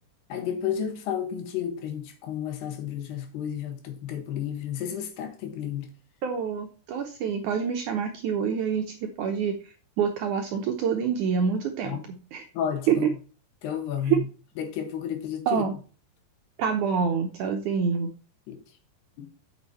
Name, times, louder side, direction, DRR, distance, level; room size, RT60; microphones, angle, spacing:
voice 1, 0.3-5.9 11.9-12.0 12.6-13.1 13.6-14.3 14.6-15.6 18.5-18.6 19.2-19.3, left 9 dB, 85° left, 3.6 m, -32 dB
voice 2, 6.2-12.5 12.9-13.1 14.0-14.2 15.5-15.7 16.6-18.1, right 7 dB, 75° right, 1.9 m, -27 dB
8.0 x 6.3 x 4.2 m
omnidirectional pair, 4.6 m